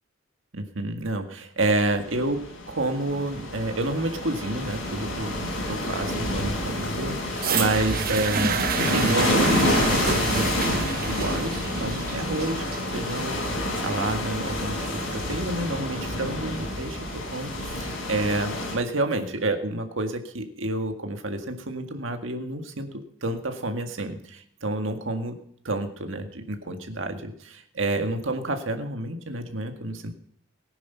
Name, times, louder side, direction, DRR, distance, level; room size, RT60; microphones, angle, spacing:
voice 1, 0.5-2.4 2.7-14.8 15.1-17.0 17.3-25.4 25.6-30.1, right 2 dB, 65° right, 5 dB, 1.9 m, -29 dB
sound 1, 1.8-18.8, left 1 dB, 75° left, 5.5 m, -28 dB
sound 2, 7.4-15.4 16.2-16.3, right 5 dB, 45° right, 1.2 m, -30 dB
18.0 x 10.0 x 5.7 m, 0.68 s
head